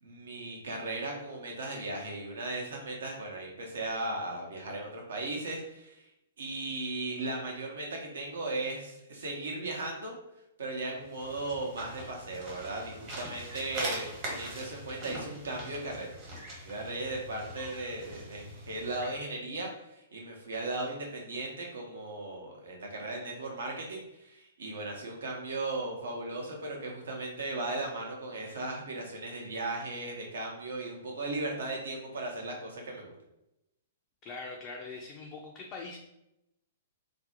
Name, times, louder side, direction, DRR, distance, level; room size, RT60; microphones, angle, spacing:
voice 1, 0.0-6.1 6.4-10.1 10.6-16.1 16.6-33.1, right 2 dB, 65° right, 0 dB, 0.7 m, -37 dB
sound 1, 11.0-19.2, right 1 dB, 35° right, 1.0 m, -42 dB
voice 2, 34.2-36.0, left 3 dB, 25° left, -1 dB, 0.3 m, -42 dB
2.5 x 2.0 x 2.7 m, 0.87 s
figure-of-eight pair, 110°, 0 cm